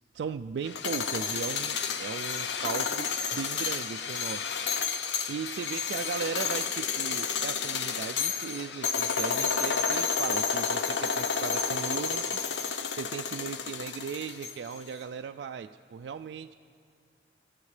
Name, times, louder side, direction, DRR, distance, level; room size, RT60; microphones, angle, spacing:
voice 1, 0.1-4.6 5.3-12.4 12.9-16.5, right 6 dB, 75° right, 7 dB, 0.3 m, -37 dB
sound 1, 0.6-14.8, left 6 dB, 85° left, 0.6 m, -31 dB
27.0 x 13.0 x 3.3 m, 2.4 s
head